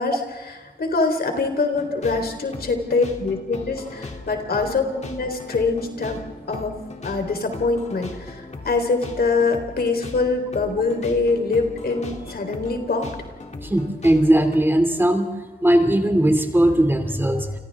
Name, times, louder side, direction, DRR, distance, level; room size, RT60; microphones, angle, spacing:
voice 1, 0.0-6.2 6.5-6.7 7.0-13.1, left 3 dB, 65° left, 5 dB, 3.9 m, -24 dB
sound 1, 1.7-14.6, left 2 dB, 40° left, 2.9 m, -38 dB
voice 2, 13.6-15.3 15.6-17.6, right 1 dB, 10° right, 5 dB, 2.6 m, -18 dB
29.5 x 27.5 x 3.6 m, 1.3 s
wide cardioid pair, 105°, 18 cm